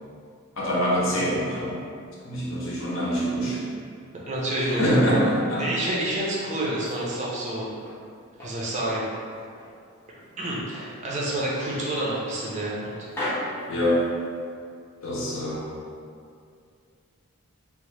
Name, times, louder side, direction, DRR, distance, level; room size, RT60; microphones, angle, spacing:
voice 1, 0.6-1.8 2.2-3.7 4.8-5.7 13.7-14.0 15.0-15.7, equal, 60° left, -5 dB, 0.6 m, -24 dB
voice 2, 4.2-5.3 5.6-7.7 8.4-9.0 10.4-12.9, right 1 dB, 30° right, -5 dB, 0.5 m, -28 dB
sound 1, 6.8-8.0 8.4-9.8 10.2-11.0 11.3-11.5 11.9-12.8 13.1-14.5, left 1 dB, 10° left, 0.6 m, -37 dB
2.8 x 2.0 x 3.2 m, 2.3 s
head